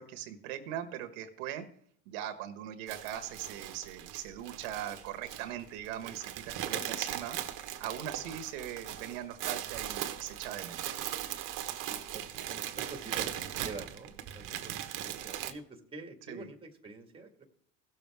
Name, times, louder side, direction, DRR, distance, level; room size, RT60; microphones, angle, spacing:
voice 1, 0.0-1.7 2.1-7.4 7.8-10.8 16.3-16.5, right 11 dB, 80° right, 8 dB, 1.4 m, -40 dB
sound 1, 2.9-15.5, right 11 dB, 55° right, 1.3 m, -39 dB
voice 2, 11.9-17.4, right 3 dB, 15° right, 4 dB, 1.8 m, -47 dB
17.0 x 6.9 x 3.5 m, 0.64 s
supercardioid pair, 110°, 38 cm